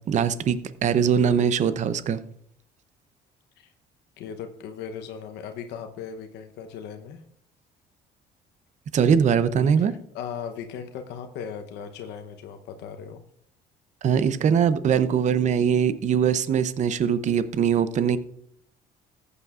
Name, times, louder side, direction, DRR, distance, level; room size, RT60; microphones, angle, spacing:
voice 1, 0.0-2.2 8.9-9.9 14.0-18.2, right 7 dB, 45° right, 13 dB, 0.6 m, -22 dB
voice 2, 4.2-7.2 9.9-13.2, left 7 dB, 85° left, 6 dB, 0.9 m, -38 dB
14.5 x 8.2 x 2.4 m, 0.66 s
cardioid pair, 110°, 17 cm